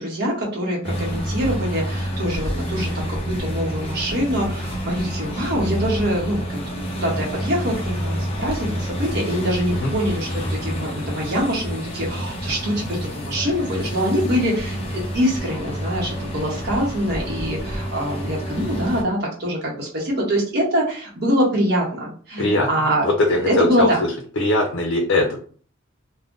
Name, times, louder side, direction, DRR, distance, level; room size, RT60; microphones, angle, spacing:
voice 1, 0.0-6.6 6.9-24.0, equal, 55° right, -3 dB, 0.8 m, -24 dB
sound 1, 0.8-19.0, equal, 30° left, 0.6 m, -28 dB
voice 2, 22.4-22.7 23.0-24.1 24.4-25.4, left 1 dB, 85° left, 1 dB, 0.5 m, -20 dB
2.5 x 2.1 x 3.6 m, 0.43 s
head